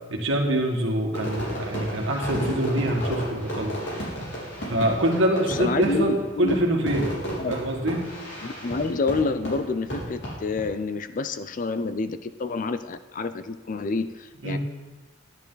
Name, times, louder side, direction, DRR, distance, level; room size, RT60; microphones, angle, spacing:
voice 1, 0.1-3.8 4.7-7.1 7.5-8.0 14.4-14.6, right 1 dB, 70° right, 0 dB, 1.8 m, -24 dB
Fireworks, 1.1-10.7, equal, 60° left, 4.2 m, -33 dB
voice 2, 5.5-6.6 7.4-7.5 8.4-14.6, left 3 dB, 40° left, 12 dB, 0.4 m, -28 dB
11.5 x 10.5 x 4.0 m, 1.3 s
head